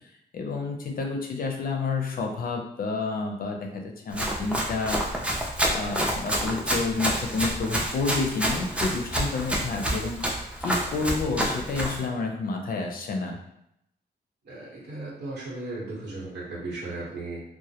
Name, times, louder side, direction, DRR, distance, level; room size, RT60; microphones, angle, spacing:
voice 1, 0.3-5.0 5.6-10.2 10.6-13.4, left 4 dB, 55° left, 2 dB, 0.5 m, -29 dB
Run, 4.1-12.0, equal, 5° right, 0.4 m, -28 dB
voice 2, 14.4-17.4, right 2 dB, 70° right, -7 dB, 1.1 m, -36 dB
2.1 x 2.0 x 2.8 m, 0.78 s
cardioid pair, 90°, 18 cm